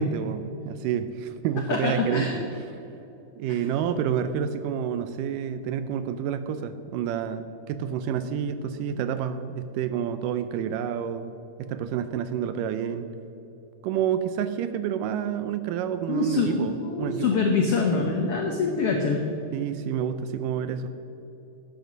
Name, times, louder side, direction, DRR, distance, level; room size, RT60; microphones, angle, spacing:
voice 1, 0.0-2.4 3.4-11.3 11.6-13.1 13.8-17.4 19.5-20.9, right 8 dB, 80° right, 11 dB, 2.0 m, -29 dB
voice 2, 1.7-2.4 8.2-8.4 16.1-19.2, left 4 dB, 85° left, 2 dB, 1.3 m, -25 dB
12.0 x 9.4 x 6.1 m, 2.9 s
omnidirectional pair, 4.2 m